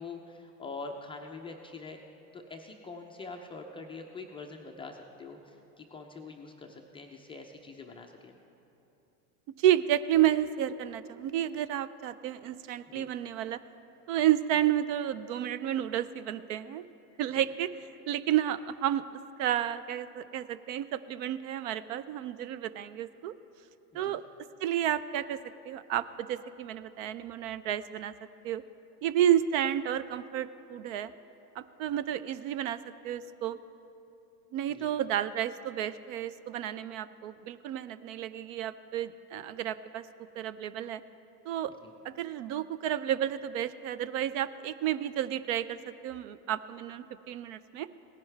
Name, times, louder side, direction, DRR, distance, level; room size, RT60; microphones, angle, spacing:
voice 1, 0.0-2.0 2.3-8.4 12.9-13.1 17.3-17.5 23.9-24.2 34.7-34.9 41.8-41.9, left 3 dB, 10° left, 1 dB, 0.4 m, -44 dB
voice 2, 9.6-13.6 14.1-16.8 17.2-19.1 19.4-23.3 23.9-24.2 24.6-28.1 28.4-28.6 29.0-31.1 31.6-33.6 34.5-40.1 40.4-41.0 41.4-41.7 42.0-47.9, right 11 dB, 55° right, 15 dB, 0.5 m, -31 dB
17.5 x 10.5 x 3.3 m, 2.9 s
hypercardioid pair, 110°, 49 cm